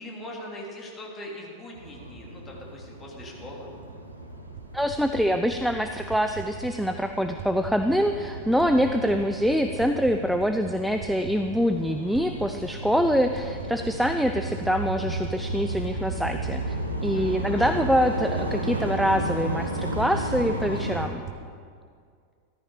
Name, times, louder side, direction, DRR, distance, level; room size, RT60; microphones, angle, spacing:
voice 1, 0.0-3.7 17.1-17.8, left 1 dB, 20° left, -2 dB, 3.1 m, -41 dB
sound 1, 1.7-21.1, right 1 dB, 80° right, 1.5 m, -34 dB
sound 2, 4.5-21.4, right 8 dB, 35° right, 1.1 m, -43 dB
voice 2, 4.7-21.2, equal, ahead, 6 dB, 0.5 m, -25 dB
14.5 x 13.5 x 5.0 m, 2.2 s
figure-of-eight pair, 90°, 0 cm